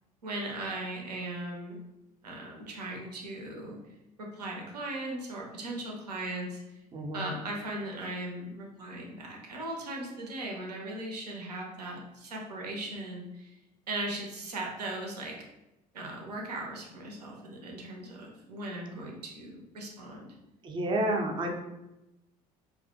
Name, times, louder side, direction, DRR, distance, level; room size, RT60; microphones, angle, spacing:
voice 1, 0.2-1.8 2.2-3.8 4.2-6.6 7.1-13.5 13.9-15.3 15.9-20.3, right 2 dB, 75° right, 0 dB, 0.5 m, -38 dB
voice 2, 6.9-7.3 20.6-21.5, right 1 dB, 25° right, 2 dB, 0.4 m, -30 dB
2.3 x 2.1 x 2.5 m, 0.95 s
figure-of-eight pair, 55°, 20 cm